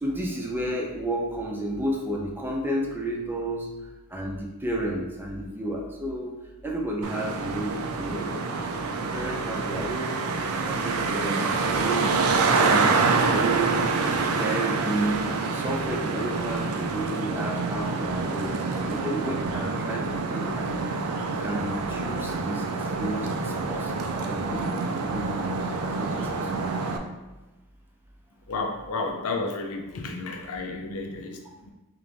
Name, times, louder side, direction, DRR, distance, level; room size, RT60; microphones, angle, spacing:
voice 1, 0.0-3.7 4.1-6.4 6.6-10.2 10.7-12.2 12.4-13.8 14.3-20.9 21.3-25.4 26.0-26.7, right 1 dB, 10° right, -1 dB, 0.5 m, -32 dB
Traffic noise roadway noise, 7.0-27.0, right 4 dB, 75° right, 0.4 m, -27 dB
voice 2, 28.5-31.7, left 3 dB, 80° left, 3 dB, 0.6 m, -32 dB
3.9 x 3.0 x 3.4 m, 1.1 s
head